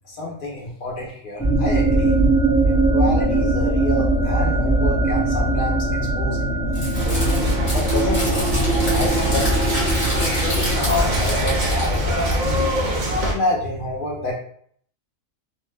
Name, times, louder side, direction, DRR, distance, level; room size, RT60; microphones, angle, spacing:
voice 1, 0.1-2.2 2.6-5.8 6.1-6.4 7.1-8.5 8.9-12.6 13.2-14.3, left 2 dB, 55° left, -1 dB, 0.6 m, -28 dB
sound 1, 1.4-11.2, right 2 dB, 15° left, 0.4 m, -21 dB
Crumpling crinkling, 6.7-12.7, equal, 30° left, 1.0 m, -28 dB
sound 2, 6.9-13.3, right 1 dB, 60° right, 0.4 m, -23 dB
2.6 x 2.1 x 3.2 m, 0.62 s
omnidirectional pair, 1.4 m